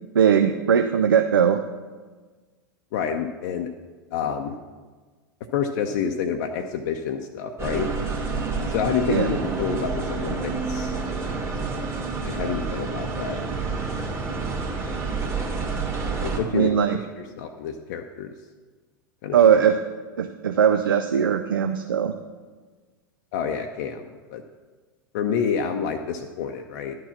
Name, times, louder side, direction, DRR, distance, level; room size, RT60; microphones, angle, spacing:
voice 1, 0.1-1.6 9.1-9.3 16.5-17.0 19.3-19.8 20.2-22.2, right 8 dB, 75° right, 7 dB, 0.5 m, -19 dB
voice 2, 2.9-3.7 4.1-4.6 5.5-7.9 8.7-11.0 12.2-13.4 16.2-16.7 17.2-18.3 19.2-19.6 23.3-24.4 25.1-27.0, left 7 dB, 55° left, 3 dB, 0.6 m, -28 dB
sound 1, 7.6-16.4, right 4 dB, 20° right, 1.9 m, -28 dB
11.5 x 4.6 x 7.1 m, 1.4 s
figure-of-eight pair, 90°, 11 cm